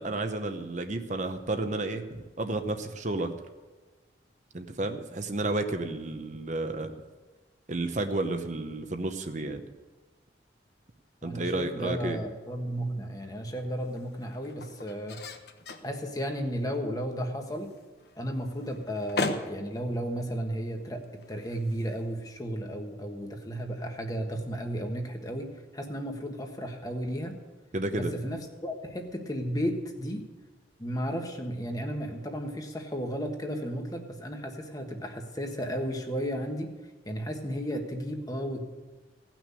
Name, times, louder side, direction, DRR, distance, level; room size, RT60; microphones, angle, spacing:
voice 1, 0.0-3.3 4.5-6.9 7.7-9.6 11.2-12.2 27.7-28.1, right 2 dB, 40° right, 6 dB, 0.8 m, -31 dB
voice 2, 11.2-15.2 15.8-17.7 18.1-27.3 27.9-30.2 30.8-36.7 37.0-38.7, equal, 20° left, 3 dB, 1.4 m, -34 dB
sound 1, 12.3-22.6, left 2 dB, 60° left, 1.1 m, -41 dB
17.0 x 6.1 x 8.2 m, 1.2 s
head